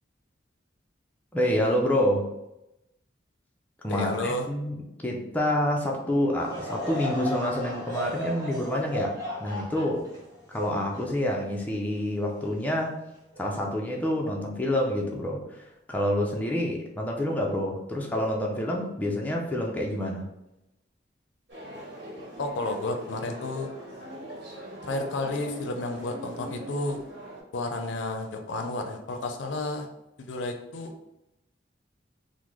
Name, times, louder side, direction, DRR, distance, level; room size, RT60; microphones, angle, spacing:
voice 1, 1.3-2.3 3.8-10.1 10.5-13.0 13.4-20.3, left 1 dB, 10° left, -2 dB, 0.4 m, -28 dB
voice 2, 3.9-4.5 22.4-23.7 24.8-27.0 27.5-29.9 30.2-30.9, left 2 dB, 80° left, 5 dB, 0.5 m, -31 dB
Laughter / Crowd, 6.4-11.9 12.4-12.5 13.3-13.6, left 1 dB, 20° right, 0.9 m, -35 dB
sound 1, 21.5-27.4, right 1 dB, 65° right, 1.1 m, -41 dB
3.6 x 2.0 x 3.0 m, 0.89 s
head